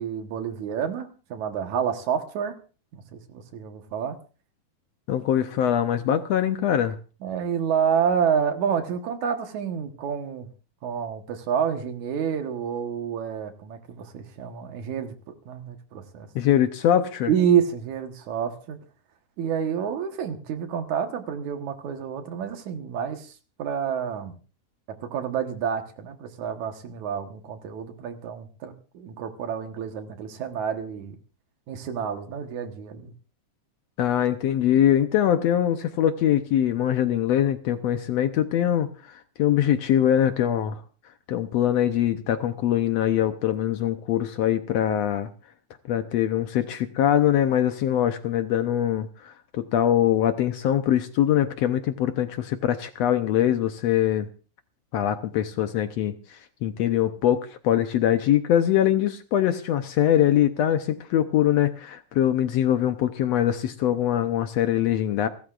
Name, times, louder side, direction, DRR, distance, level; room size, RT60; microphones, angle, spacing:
voice 1, 0.0-2.5 2.9-4.2 7.2-10.5 10.8-16.3 17.3-18.8 19.4-24.4 25.0-31.2 31.7-33.1, right 8 dB, 70° right, 7 dB, 2.7 m, -28 dB
voice 2, 5.1-7.0 16.4-17.3 34.0-40.8 41.3-45.3 45.9-54.3 54.9-65.3, left 10 dB, 70° left, 9 dB, 1.7 m, -23 dB
30.0 x 13.0 x 2.5 m, 0.36 s
omnidirectional pair, 3.5 m